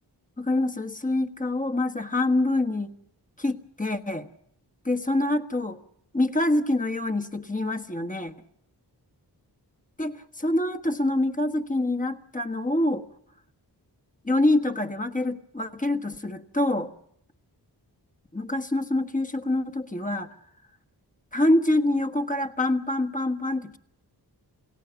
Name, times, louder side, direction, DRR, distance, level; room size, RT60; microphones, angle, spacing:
voice 1, 0.4-2.9 3.4-4.3 4.8-5.8 6.1-8.3 10.0-13.1 14.2-16.9 18.3-20.3 21.3-23.8, left 1 dB, 20° left, 7 dB, 1.4 m, -25 dB
28.5 x 17.5 x 7.1 m, 0.74 s
wide cardioid pair, 120°, 41 cm